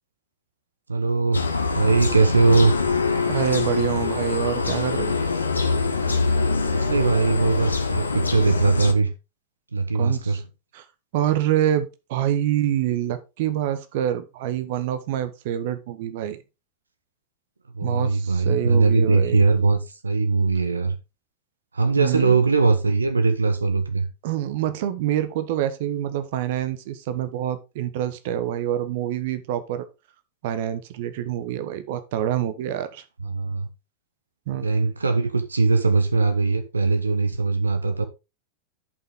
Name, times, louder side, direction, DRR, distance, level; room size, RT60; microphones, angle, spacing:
voice 1, 0.9-1.4 1.7-2.8 6.7-9.1 9.7-10.4 17.7-21.0 21.7-24.1 33.2-33.7 34.6-38.1, right 3 dB, 75° right, 1.0 m, -20 dB
sound 1, 1.3-8.9, left 4 dB, 75° left, 1.2 m, -24 dB
voice 2, 3.1-5.2 9.9-10.4 10.7-10.9 11.1-16.4 17.8-19.4 22.0-22.5 24.2-29.9 30.4-33.0 34.5-34.9, right 11 dB, 50° right, 1.1 m, -26 dB
11.0 x 5.7 x 3.6 m
figure-of-eight pair, 90°, 0 cm